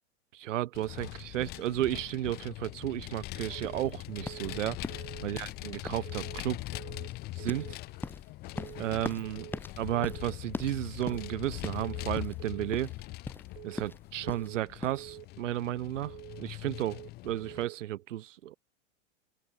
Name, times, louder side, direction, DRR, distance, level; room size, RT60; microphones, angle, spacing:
voice 1, 0.3-4.8 5.2-6.6 7.4-7.8 8.8-9.5 9.8-12.9 13.6-18.6, right 13 dB, 80° right, 1.9 m, -33 dB
Vehicle, 0.7-17.7, left 19 dB, 25° left, 0.5 m, -42 dB
sound 1, 3.5-3.9 4.2-4.6 4.9-5.3 6.0-6.4 6.7-7.1 7.4-7.8 8.5-8.9 9.2-9.6 9.9-10.3 11.0-11.4 11.7-12.1 12.4-12.8 13.5-13.9 14.2-14.6 14.9-15.3 16.1-16.5 16.7-17.1 17.4-17.8, right 25 dB, 55° right, 5.8 m, -47 dB
sound 2, 3.6-15.0, left 3 dB, 5° left, 0.9 m, -42 dB
open air
supercardioid pair, 130°, 37 cm